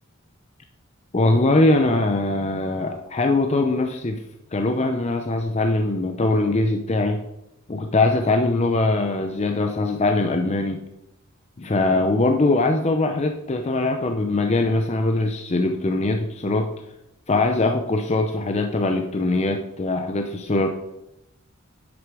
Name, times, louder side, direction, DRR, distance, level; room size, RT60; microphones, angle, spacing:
voice 1, 1.1-4.2 4.5-7.2 7.7-10.8 11.6-16.7 17.3-20.7, left 2 dB, 30° left, 5 dB, 0.6 m, -22 dB
10.5 x 6.5 x 4.8 m, 0.87 s
head